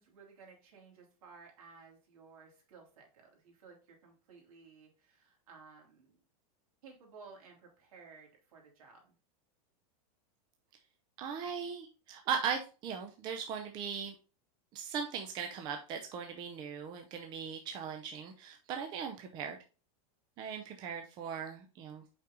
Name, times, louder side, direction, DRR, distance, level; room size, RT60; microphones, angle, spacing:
voice 1, 0.0-6.2 6.8-9.1 19.0-19.1, right 5 dB, 65° right, 0 dB, 3.2 m, -56 dB
voice 2, 11.2-14.1 14.7-19.6 20.4-22.0, right 7 dB, 25° right, 4 dB, 0.6 m, -39 dB
5.6 x 5.1 x 3.8 m, 0.34 s
supercardioid pair, 170°, 19 cm